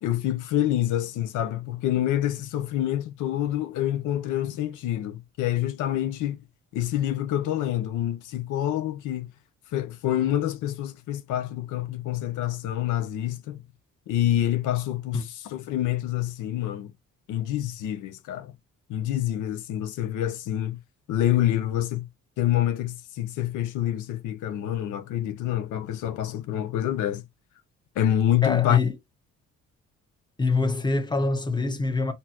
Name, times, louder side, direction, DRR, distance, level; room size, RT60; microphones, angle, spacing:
voice 1, 0.0-6.4 6.7-9.3 9.7-13.6 14.1-16.9 17.3-18.5 18.9-20.8 21.1-22.1 22.4-27.2 28.0-28.8, left 12 dB, 90° left, 0.8 m, -27 dB
voice 2, 28.4-28.9 30.4-32.1, left 3 dB, 15° left, 1.2 m, -24 dB
4.2 x 2.7 x 2.9 m
cardioid pair, 90°, 30 cm